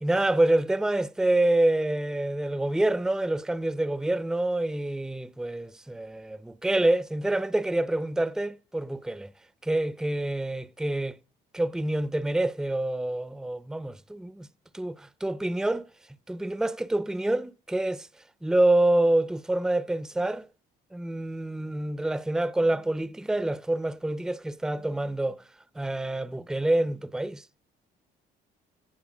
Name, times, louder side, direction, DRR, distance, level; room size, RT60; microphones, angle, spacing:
voice 1, 0.0-9.3 9.6-11.2 11.5-14.5 14.7-15.9 16.3-18.1 18.4-20.5 20.9-25.4 25.8-27.4, right 1 dB, 5° right, 0.5 m, -27 dB
16.0 x 7.5 x 6.2 m
cardioid pair, 110°, 17 cm